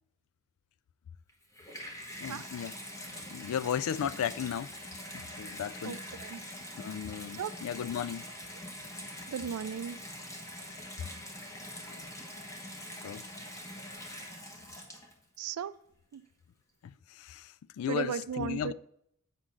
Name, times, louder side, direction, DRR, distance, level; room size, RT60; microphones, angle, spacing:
Water tap faucet / Bathtub (filling or washing), 1.3-15.4 16.1-16.2, left 1 dB, 15° left, 1.3 m, -44 dB
voice 1, 2.2-2.7 3.3-4.7 5.4-6.0 6.7-8.3 11.9-12.0 13.0-13.2 16.8-18.7, left 9 dB, 65° left, 0.3 m, -35 dB
voice 2, 5.8-6.4 7.4-7.5 9.3-10.0 15.4-15.8 16.1-16.2 17.9-18.7, right 7 dB, 75° right, 0.4 m, -36 dB
8.3 x 3.8 x 6.2 m
head